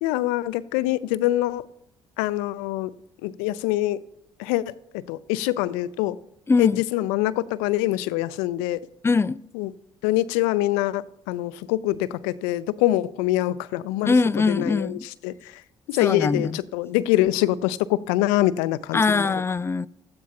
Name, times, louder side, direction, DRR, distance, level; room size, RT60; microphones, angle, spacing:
voice 1, 0.0-1.7 2.2-2.9 3.2-4.0 4.4-6.2 6.6-8.8 9.5-9.7 10.0-15.6 15.9-19.4, left 15 dB, 80° left, 0.5 m, -25 dB
voice 2, 6.5-6.8 9.0-9.4 14.0-15.0 16.0-16.6 18.9-19.9, left 4 dB, 20° left, 0.4 m, -22 dB
16.0 x 13.0 x 2.9 m
hypercardioid pair, 50°, 13 cm